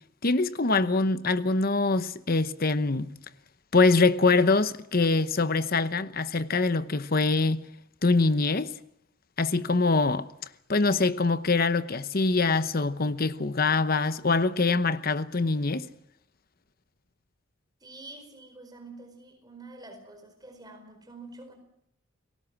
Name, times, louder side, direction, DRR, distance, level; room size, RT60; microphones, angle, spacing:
voice 1, 0.2-3.1 3.7-7.6 8.0-8.7 9.4-10.3 10.7-15.9, left 3 dB, 45° left, 0.9 m, -24 dB
voice 2, 17.8-21.6, right 2 dB, 20° right, 4.6 m, -47 dB
30.0 x 19.0 x 6.0 m
head